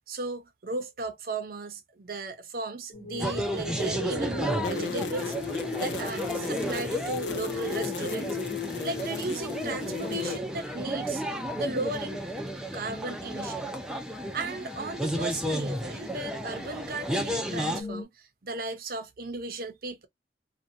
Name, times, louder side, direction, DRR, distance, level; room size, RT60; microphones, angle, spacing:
voice 1, 0.1-8.4 8.8-11.2 11.5-12.3 12.7-13.7 14.3-20.1, right 3 dB, 55° right, 0.6 m, -36 dB
sound 1, 2.9-11.4 11.7-12.3 12.6-12.7 13.2-13.3 14.3-16.5 16.8-16.9 17.1-18.0, equal, 25° left, 0.8 m, -42 dB
sound 2, 3.2-17.8, equal, 5° right, 0.4 m, -33 dB
sound 3, 4.6-10.4, left 8 dB, 75° left, 0.4 m, -36 dB
2.6 x 2.2 x 2.5 m
head